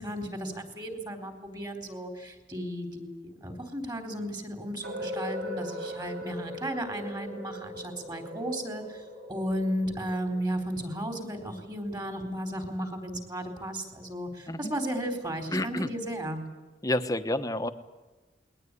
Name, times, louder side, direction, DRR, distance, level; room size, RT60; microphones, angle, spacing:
voice 1, 0.0-16.4, equal, 25° right, 5 dB, 4.0 m, -34 dB
sound 1, 4.8-10.7, equal, 55° right, 5.8 m, -39 dB
voice 2, 15.5-15.9 16.8-17.7, left 1 dB, 20° left, 10 dB, 1.2 m, -29 dB
21.0 x 20.0 x 9.9 m, 1.2 s
head